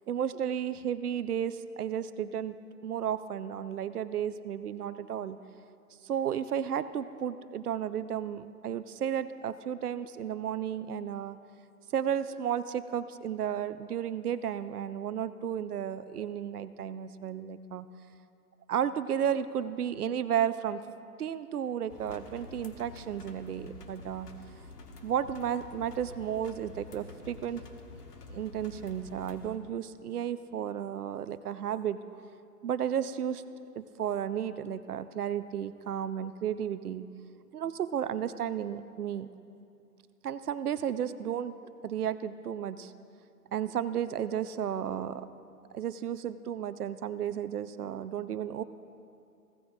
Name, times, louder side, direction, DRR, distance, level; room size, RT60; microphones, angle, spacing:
voice 1, 0.1-2.6 2.8-5.4 6.0-11.4 11.9-17.9 18.7-20.8 21.2-24.3 25.0-27.6 28.3-32.0 32.6-33.4 33.8-37.1 37.5-39.3 40.2-41.6 41.8-42.9 43.5-45.3 45.7-48.6, right 9 dB, 70° right, 13 dB, 0.6 m, -33 dB
sound 1, 21.9-29.6, left 2 dB, 75° left, 1.4 m, -48 dB
16.5 x 9.3 x 2.7 m, 2.5 s
hypercardioid pair, 155°, 47 cm